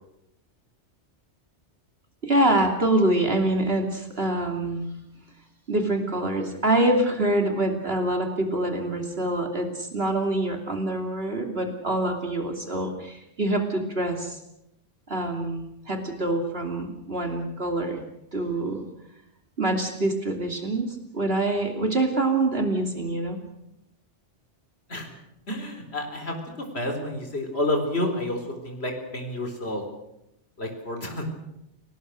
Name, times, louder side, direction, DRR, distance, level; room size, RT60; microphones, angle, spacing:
voice 1, 2.2-4.9 5.7-14.4 15.1-18.0 18.3-18.8 19.6-23.4, right 1 dB, 55° right, 4 dB, 3.2 m, -25 dB
voice 2, 25.5-26.3 26.7-28.4 28.6-29.8 30.6-31.3, left 1 dB, 60° left, 4 dB, 4.5 m, -29 dB
29.0 x 19.5 x 6.5 m, 0.83 s
omnidirectional pair, 1.2 m